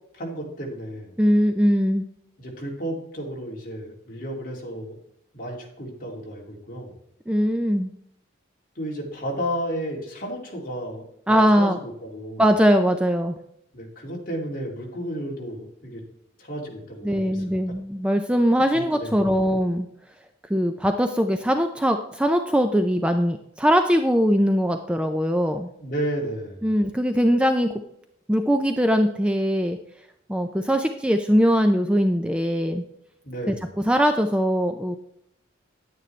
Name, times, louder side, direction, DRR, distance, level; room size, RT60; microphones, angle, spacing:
voice 1, 0.1-1.1 2.4-5.0 5.3-6.9 8.8-12.4 13.7-16.0 16.4-17.6 18.7-19.2 25.8-26.6 33.2-33.6, equal, 45° left, -2 dB, 2.5 m, -32 dB
voice 2, 1.2-2.1 7.3-7.9 11.3-11.8 12.4-13.4 17.0-19.9 20.5-25.7 26.6-27.7 28.3-29.8 30.3-32.8 33.5-33.6 33.9-35.0, equal, 5° right, 6 dB, 0.4 m, -21 dB
9.9 x 9.2 x 3.2 m, 0.74 s
head